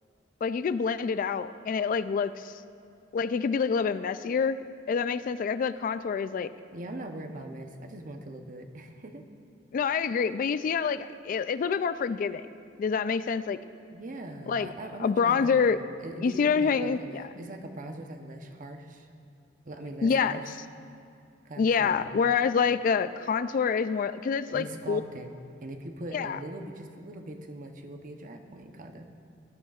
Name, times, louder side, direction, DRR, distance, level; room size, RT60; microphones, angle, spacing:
voice 1, 0.4-2.5 3.1-4.6 4.9-6.5 9.7-12.5 12.8-13.6 14.5-14.7 15.0-15.8 16.2-17.2 20.0-20.4 21.6-25.0 26.1-26.4, left 6 dB, 45° left, 13 dB, 0.3 m, -27 dB
voice 2, 6.7-9.2 9.9-10.1 13.9-19.1 19.7-20.5 21.4-22.1 24.5-29.1, right 1 dB, 45° right, 5 dB, 0.8 m, -41 dB
17.5 x 12.5 x 2.4 m, 2.4 s
head